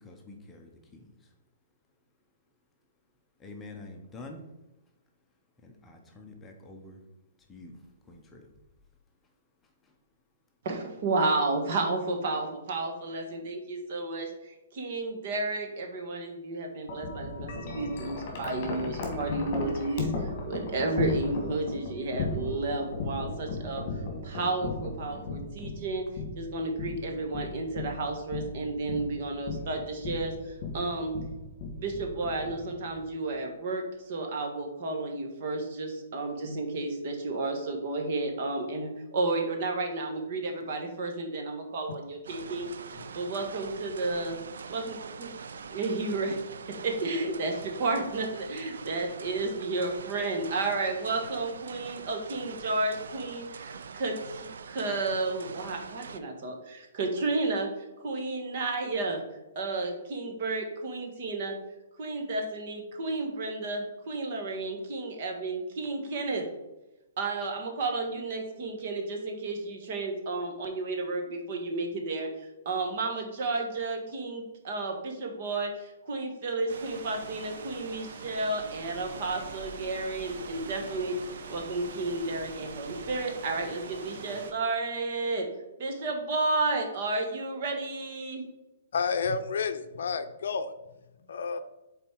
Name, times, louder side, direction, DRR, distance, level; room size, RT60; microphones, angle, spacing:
voice 1, 0.0-1.0 3.4-4.4 5.6-7.0 7.5-7.8 8.1-8.5, left 2 dB, 10° left, 2 dB, 0.8 m, -47 dB
voice 2, 10.6-23.8 24.2-26.0 26.3-31.2 31.8-44.4 44.7-45.3 45.7-57.7 58.0-59.2 59.5-61.6 62.0-66.4 67.2-85.5 85.8-88.4, right 3 dB, 45° right, 2 dB, 1.4 m, -32 dB
Wind chime, 16.9-33.1, left 3 dB, 30° left, 1.8 m, -36 dB
sound 1, 42.2-56.2, right 5 dB, 80° right, 0.5 m, -44 dB
sound 2, 76.7-84.5, right 4 dB, 60° right, 0.9 m, -43 dB
voice 3, 88.9-90.7 91.3-91.6, left 5 dB, 65° left, 9 dB, 0.6 m, -30 dB
7.1 x 4.1 x 4.6 m, 0.99 s
hypercardioid pair, 165°, 0 cm